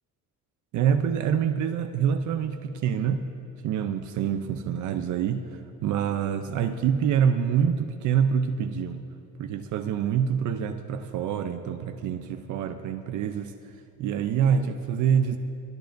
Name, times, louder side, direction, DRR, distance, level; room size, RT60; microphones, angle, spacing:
voice 1, 0.7-3.2 3.6-9.0 9.4-13.5 14.0-15.4, right 8 dB, 65° right, 8 dB, 0.6 m, -26 dB
25.5 x 12.5 x 2.6 m, 2.6 s
cardioid pair, 170°, 32 cm